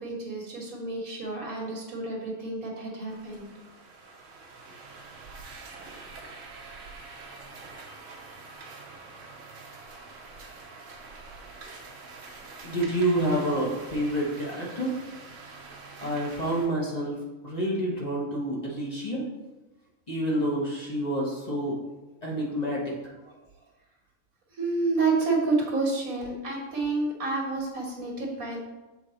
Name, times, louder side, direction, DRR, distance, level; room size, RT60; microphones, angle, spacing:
voice 1, 0.0-3.5 24.6-28.7, right 3 dB, 85° right, -1 dB, 1.8 m, -29 dB
sound 1, 3.1-16.7, right 3 dB, 65° right, 1.2 m, -45 dB
voice 2, 12.6-15.0 16.0-17.2 17.4-19.3 20.1-21.8 22.2-22.9, right 1 dB, 30° left, -4 dB, 1.3 m, -28 dB
6.6 x 3.9 x 4.0 m, 1.1 s
omnidirectional pair, 1.4 m